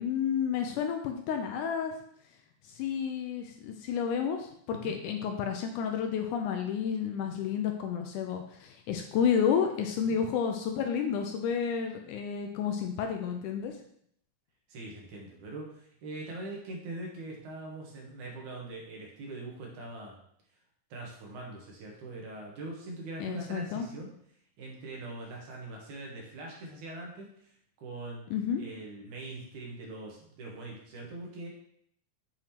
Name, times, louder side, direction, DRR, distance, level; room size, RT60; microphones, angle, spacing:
voice 1, 0.0-1.9 2.8-13.7 23.2-23.9 28.3-28.6, left 7 dB, 80° left, 4 dB, 2.0 m, -31 dB
voice 2, 14.7-20.2 20.9-24.1 24.6-28.2 28.6-31.5, right 2 dB, 70° right, -1 dB, 2.5 m, -42 dB
7.4 x 4.9 x 2.9 m, 0.68 s
omnidirectional pair, 3.9 m